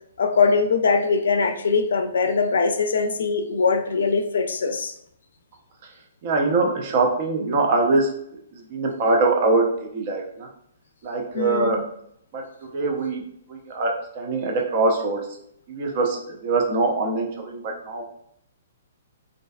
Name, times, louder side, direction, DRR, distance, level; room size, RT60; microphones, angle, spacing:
voice 1, 0.2-4.9 11.3-11.8, left 4 dB, 75° left, 7 dB, 0.3 m, -22 dB
voice 2, 6.2-8.1 8.5-10.5 11.0-11.8 12.3-12.4 12.7-13.2 13.5-15.3 15.7-18.0, right 3 dB, 45° right, 1 dB, 0.4 m, -23 dB
2.5 x 2.3 x 2.2 m, 0.72 s
hypercardioid pair, 135°, 0 cm